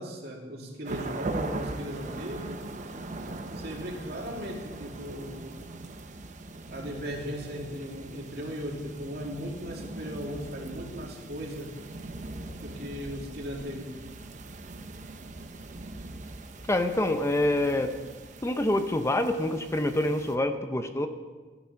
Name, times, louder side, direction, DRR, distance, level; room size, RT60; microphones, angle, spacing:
voice 1, 0.0-2.7 3.5-5.6 6.7-11.8 12.6-14.0, equal, 65° right, -1 dB, 2.4 m, -37 dB
sound 1, 0.8-20.3, right 2 dB, 45° right, 0.8 m, -41 dB
voice 2, 16.7-17.9 18.4-21.1, left 1 dB, 15° left, 7 dB, 0.6 m, -26 dB
14.0 x 9.3 x 5.8 m, 1.4 s
head